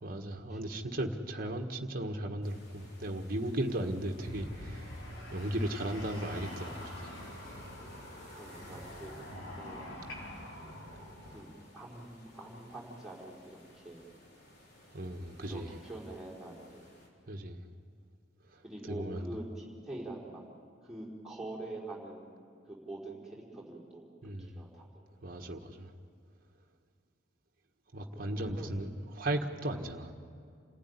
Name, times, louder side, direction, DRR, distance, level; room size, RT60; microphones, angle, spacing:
voice 1, 0.0-5.0 5.3-7.4 9.3-9.4 14.9-15.8 17.3-17.6 18.5-19.3 24.2-24.6 25.2-25.9 27.9-30.1, right 1 dB, 45° right, 2 dB, 1.5 m, -36 dB
sound 1, 2.4-17.1, left 1 dB, 50° left, 4.2 m, -57 dB
sound 2, 4.2-11.4, left 1 dB, 75° left, 5.1 m, -45 dB
voice 2, 8.4-9.1 9.6-10.0 11.3-11.5 11.7-14.0 15.5-16.9 18.6-20.4 20.8-25.0 28.3-28.7, right 2 dB, ahead, -6 dB, 4.4 m, -45 dB
28.0 x 15.5 x 9.6 m, 2.3 s
head